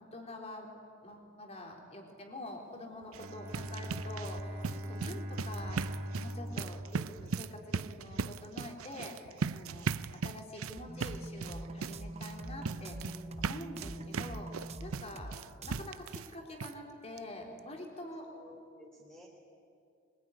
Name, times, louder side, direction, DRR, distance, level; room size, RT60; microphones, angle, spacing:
voice 1, 0.1-0.7 1.0-13.0 13.4-18.3, left 1 dB, 30° left, 2 dB, 4.1 m, -46 dB
sound 1, 3.0-16.3 16.6-16.7 17.2-17.3 17.6-17.7, right 5 dB, 85° right, 0.6 m, -39 dB
Bowed string instrument, 3.1-8.1, equal, 50° right, 2.4 m, -41 dB
sound 2, 10.7-15.3 15.6-15.8, right 1 dB, 30° right, 0.9 m, -43 dB
voice 2, 12.6-13.5 18.3-19.3, left 1 dB, 5° left, -4 dB, 3.5 m, -54 dB
25.0 x 21.5 x 9.9 m, 2.5 s
head